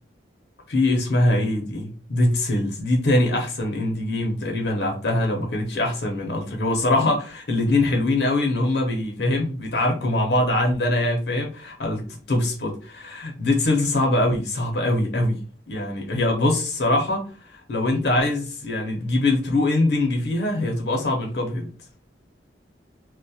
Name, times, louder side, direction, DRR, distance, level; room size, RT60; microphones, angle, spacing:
voice 1, 0.7-15.4 15.7-21.7, left 1 dB, 70° left, 2 dB, 0.6 m, -23 dB
2.2 x 2.1 x 2.7 m, 0.37 s
head